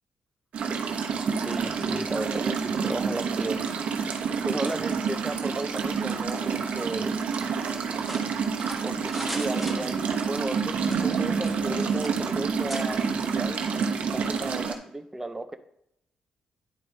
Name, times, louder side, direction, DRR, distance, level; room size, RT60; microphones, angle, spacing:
sound 1, 0.5-14.8, right 6 dB, 65° right, 0.9 m, -28 dB
voice 1, 1.4-3.6 4.4-7.1 8.8-13.6 14.1-15.6, right 2 dB, 15° right, 8 dB, 0.7 m, -34 dB
sound 2, 8.0-10.3 10.8-11.8 12.0-12.2 12.7-12.9, right 1 dB, ahead, 1.5 m, -38 dB
10.0 x 4.3 x 2.8 m, 0.77 s
supercardioid pair, 60°, 2 cm